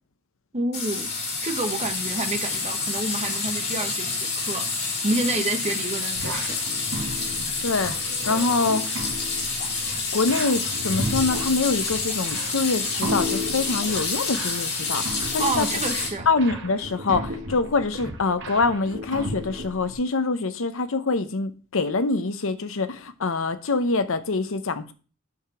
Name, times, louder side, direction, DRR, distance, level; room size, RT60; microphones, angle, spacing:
voice 1, 0.5-1.1 1.4-6.6 15.4-16.3, right 2 dB, 30° right, 1.2 m, -29 dB
sound 1, 0.7-16.1, left 4 dB, 50° left, 3.7 m, -28 dB
sound 2, 6.1-19.9, equal, 60° right, 1.8 m, -34 dB
voice 2, 7.6-7.9 8.3-8.8 10.1-15.7 16.3-24.9, left 3 dB, 65° left, 0.8 m, -25 dB
8.4 x 5.0 x 5.7 m
head